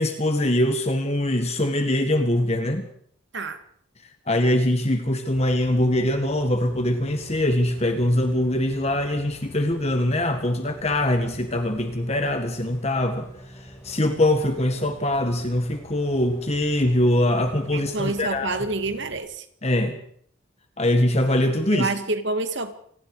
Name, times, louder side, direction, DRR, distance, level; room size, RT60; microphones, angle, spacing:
voice 1, 0.0-2.9 4.3-13.3 13.6-18.6 19.6-20.0 20.8-21.9, left 1 dB, 30° left, 6 dB, 1.8 m, -23 dB
Bus, 5.3-19.2, equal, 15° left, 5.4 m, -46 dB
voice 2, 17.7-19.5 21.7-22.7, right 3 dB, 55° right, 9 dB, 2.1 m, -27 dB
27.5 x 20.0 x 5.0 m, 0.63 s
head